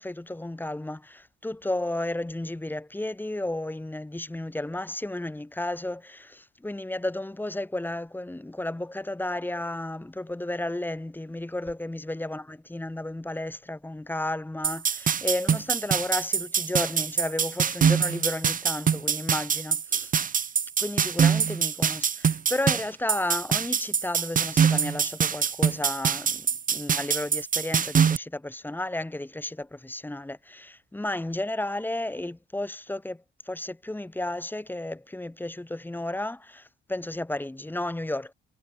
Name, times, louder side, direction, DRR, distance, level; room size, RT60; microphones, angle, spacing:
voice 1, 0.0-20.1 20.8-38.3, left 1 dB, 10° left, 1.9 m, -33 dB
sound 1, 14.6-28.2, right 7 dB, 45° right, 1.3 m, -24 dB
cardioid pair, 90°, 20 cm